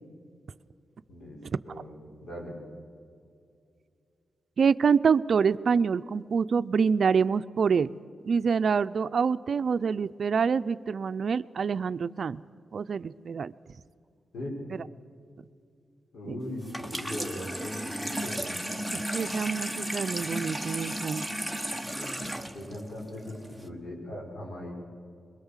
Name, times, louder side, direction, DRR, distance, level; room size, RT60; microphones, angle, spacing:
voice 1, 1.6-2.6 14.3-14.6 16.1-18.5 21.9-22.3 22.5-24.7, left 1 dB, 85° left, -2 dB, 6.1 m, -39 dB
voice 2, 4.6-8.0 8.3-12.4 12.7-13.5 16.3-16.4 18.9-21.3, right 6 dB, 65° right, 14 dB, 0.5 m, -26 dB
Water tap faucet / Sink (filling or washing), 16.6-23.7, equal, 10° left, 1.6 m, -34 dB
23.0 x 22.5 x 7.3 m, 2.4 s
cardioid pair, 80°, 0 cm